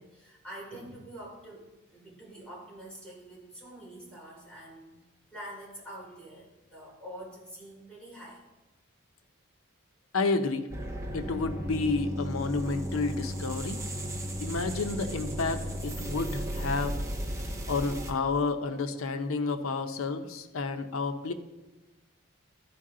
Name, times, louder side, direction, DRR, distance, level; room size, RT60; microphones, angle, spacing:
voice 1, 0.0-5.0 5.3-8.4 13.7-13.8 14.5-14.6, right 1 dB, 5° left, -6 dB, 2.8 m, -46 dB
voice 2, 10.1-10.7 11.1-13.8 14.4-17.0 17.7-21.3, left 3 dB, 85° left, 9 dB, 0.6 m, -30 dB
sound 1, 10.7-18.1, equal, 15° right, 0.7 m, -35 dB
13.0 x 4.6 x 3.7 m, 1.1 s
head